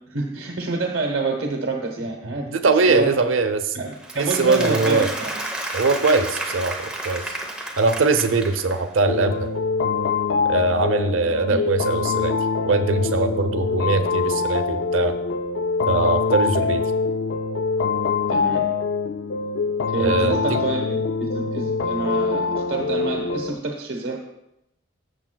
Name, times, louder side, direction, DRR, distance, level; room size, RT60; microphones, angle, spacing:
voice 1, 0.1-2.5 2.9-3.2 3.7-5.4 11.5-11.7 16.6-16.8 18.3-18.7 19.9-24.2, right 3 dB, 60° right, 0 dB, 1.1 m, -27 dB
voice 2, 2.5-3.6 4.2-5.1 5.7-7.4 7.8-9.5 10.4-15.1 15.9-16.8 20.0-20.6, right 3 dB, 85° right, 8 dB, 0.7 m, -21 dB
Applause, 3.9-9.0, right 1 dB, 5° right, 0.9 m, -31 dB
sound 1, 9.1-23.5, left 4 dB, 60° left, 0.4 m, -24 dB
14.0 x 6.9 x 2.3 m, 0.84 s
head